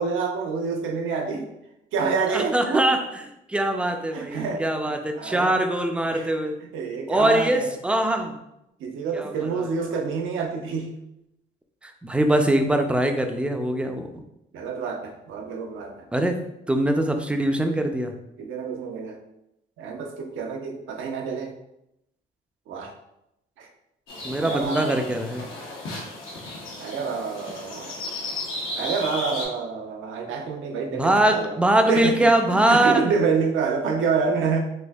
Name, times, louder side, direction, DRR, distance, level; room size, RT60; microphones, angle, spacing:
voice 1, 0.0-1.5 1.9-2.9 4.1-5.6 6.0-6.3 6.7-7.7 8.8-10.9 14.5-16.0 18.4-19.2 19.8-21.5 22.7-22.9 23.6-23.7 24.4-25.1 26.8-28.1 28.8-31.5 31.9-32.2 32.5-34.6, right 5 dB, 80° right, 2 dB, 0.6 m, -27 dB
voice 2, 2.3-3.2 3.5-6.6 7.1-8.4 9.1-10.0 11.8-14.2 16.1-16.4 16.7-18.1 24.2-25.4 30.9-33.2, right 1 dB, 5° right, 5 dB, 0.4 m, -22 dB
sound 1, 24.1-29.4, left 2 dB, 85° left, 1.0 m, -34 dB
4.2 x 2.6 x 2.3 m, 0.83 s
cardioid pair, 90°, 20 cm